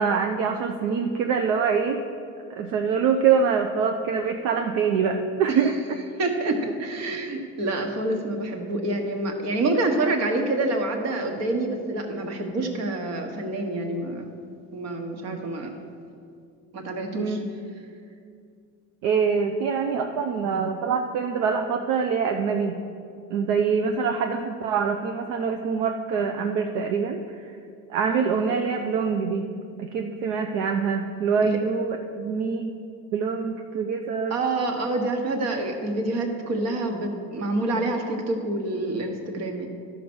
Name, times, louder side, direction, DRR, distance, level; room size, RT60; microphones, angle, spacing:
voice 1, 0.0-2.0 2.6-5.7 15.2-15.4 17.1-17.5 19.0-22.7 23.3-27.5 27.9-29.5 29.8-32.7 33.1-34.4, right 6 dB, 70° right, 5 dB, 0.7 m, -24 dB
voice 2, 6.2-14.3 14.7-15.7 16.7-17.4 31.4-31.6 34.3-39.7, right 2 dB, 50° right, 4 dB, 1.4 m, -27 dB
12.0 x 5.0 x 6.2 m, 2.4 s
cardioid pair, 130°, 33 cm